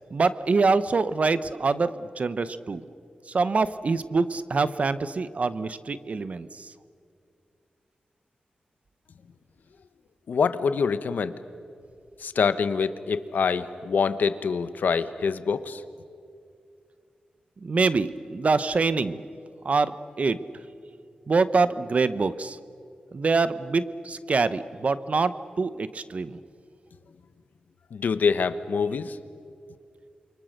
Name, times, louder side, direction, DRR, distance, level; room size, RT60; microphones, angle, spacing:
voice 1, 0.1-2.8 3.3-6.7 17.6-19.2 19.6-20.4 21.3-22.6 23.1-26.4, right 4 dB, 50° right, 14 dB, 0.9 m, -25 dB
voice 2, 10.3-11.3 12.2-15.8 27.9-29.2, left 5 dB, 80° left, 12 dB, 1.1 m, -25 dB
28.5 x 23.5 x 6.6 m, 2.4 s
wide cardioid pair, 85°, 3 cm